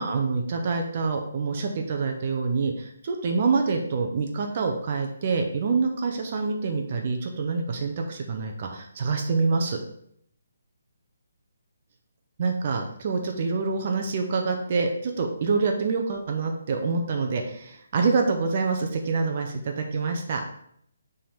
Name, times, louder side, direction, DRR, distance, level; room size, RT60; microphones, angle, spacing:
voice 1, 0.0-9.8 12.4-20.4, right 4 dB, 30° right, 3 dB, 0.6 m, -26 dB
5.4 x 3.5 x 5.5 m, 0.69 s
hypercardioid pair, 175°, 0 cm